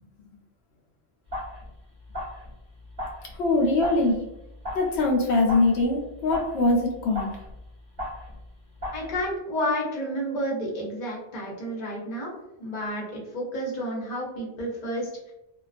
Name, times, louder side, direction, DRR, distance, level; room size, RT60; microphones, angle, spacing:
sound 1, 1.3-1.7 2.0-8.5 8.8-9.3, left 1 dB, 25° right, 0.9 m, -37 dB
voice 1, 3.4-4.2 4.8-7.3, left 2 dB, 85° left, 0 dB, 0.9 m, -22 dB
voice 2, 8.9-12.3 12.6-15.1, equal, 45° left, -3 dB, 0.8 m, -30 dB
2.3 x 2.2 x 2.4 m, 0.88 s
omnidirectional pair, 1.1 m